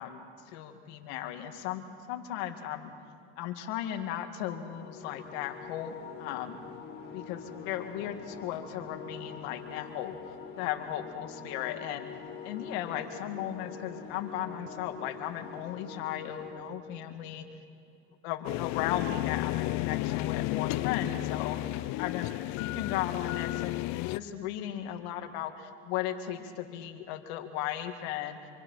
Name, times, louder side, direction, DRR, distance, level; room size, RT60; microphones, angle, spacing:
voice 1, 0.0-2.9 3.4-6.6 7.1-10.2 10.6-12.1 12.4-17.5 18.2-21.7 22.0-28.4, left 11 dB, 80° left, 6 dB, 2.3 m, -36 dB
sound 1, 4.7-16.6, left 6 dB, 40° left, 5.4 m, -44 dB
sound 2, 18.5-24.2, left 18 dB, 60° left, 0.6 m, -32 dB
27.0 x 24.5 x 5.8 m, 2.6 s
supercardioid pair, 100°, 31 cm